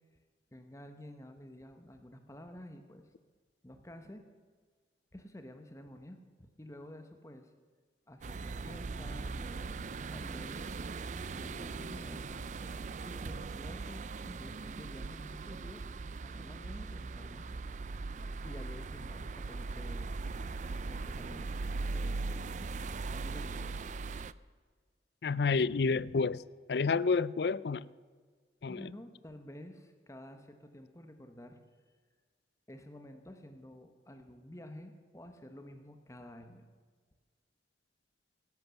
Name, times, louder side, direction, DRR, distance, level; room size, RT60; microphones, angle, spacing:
voice 1, 0.5-3.1 3.6-4.2 5.1-7.5 8.1-9.8 10.1-16.0 16.2-17.8 18.4-20.2 20.9-21.6 21.9-22.5 23.1-23.8 28.7-31.6 32.7-36.7, left 1 dB, 15° left, 1.1 m, -51 dB
sound 1, 8.2-24.3, right 3 dB, 45° right, 0.4 m, -39 dB
voice 2, 25.2-26.4 26.7-27.9 28.6-28.9, left 4 dB, 65° left, 0.5 m, -29 dB
18.0 x 10.5 x 7.0 m
head